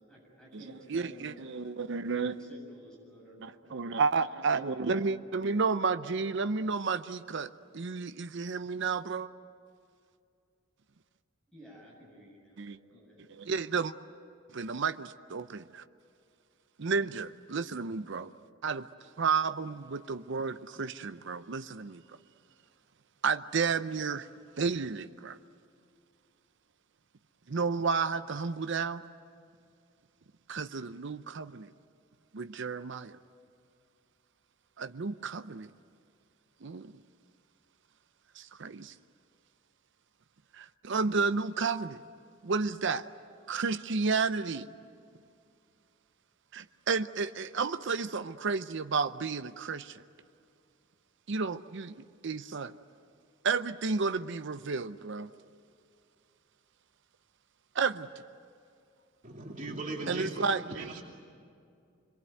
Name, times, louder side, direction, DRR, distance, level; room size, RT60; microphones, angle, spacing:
voice 1, 0.0-5.7 11.5-13.2, equal, 5° left, -3 dB, 7.6 m, -53 dB
voice 2, 0.9-2.3 3.7-9.3 12.6-12.8 13.3-13.9 14.5-15.8 16.8-18.3 18.6-18.9 19.2-22.0 23.2-24.3 24.6-25.4 27.5-29.1 30.5-31.7 32.3-33.2 34.8-35.7 36.6-36.9 38.4-38.9 40.5-42.0 42.4-43.1 43.5-44.7 46.5-50.0 51.3-51.9 52.2-52.7 53.4-55.3 57.7-58.1 60.1-61.0, right 5 dB, 65° right, 10 dB, 0.7 m, -31 dB
voice 3, 59.2-61.0, right 2 dB, 40° right, 0 dB, 2.9 m, -38 dB
26.5 x 22.5 x 9.4 m, 2.4 s
head